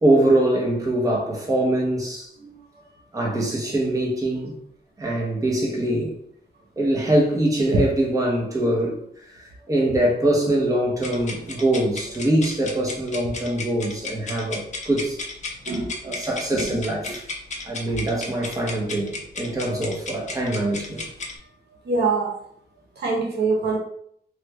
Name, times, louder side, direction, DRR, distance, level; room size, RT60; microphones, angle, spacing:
voice 1, 0.0-2.3 3.1-4.5 5.0-6.1 6.8-15.2 16.0-17.2 17.6-21.1, right 1 dB, 20° right, -2 dB, 0.8 m, -23 dB
sound 1, 11.0-21.4, left 3 dB, 45° left, 0.6 m, -34 dB
voice 2, 15.7-16.1 21.8-22.3 23.0-23.8, right 4 dB, 90° right, -1 dB, 0.9 m, -24 dB
3.2 x 2.3 x 3.1 m, 0.68 s
wide cardioid pair, 130°, 17 cm